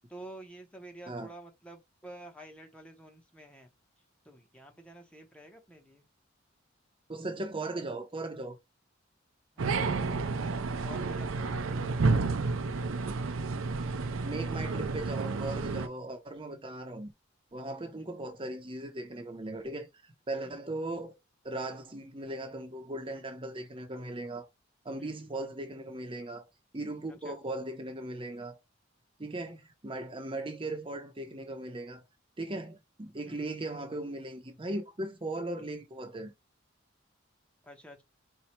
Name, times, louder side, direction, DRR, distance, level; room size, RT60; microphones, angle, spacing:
voice 1, 0.1-3.7 4.2-6.0 10.8-11.9 20.4-20.6 25.0-25.3 27.2-27.4 33.3-33.5 37.6-38.0, right 1 dB, 5° left, 0.9 m, -49 dB
voice 2, 7.1-8.6 14.2-17.1 17.5-19.9 20.3-21.2 21.4-24.5 24.8-26.5 26.7-28.6 29.2-32.0 32.4-36.3, right 2 dB, 25° right, 0.8 m, -38 dB
sound 1, 9.6-15.9, right 3 dB, 85° right, 0.5 m, -30 dB
4.4 x 2.2 x 4.3 m
head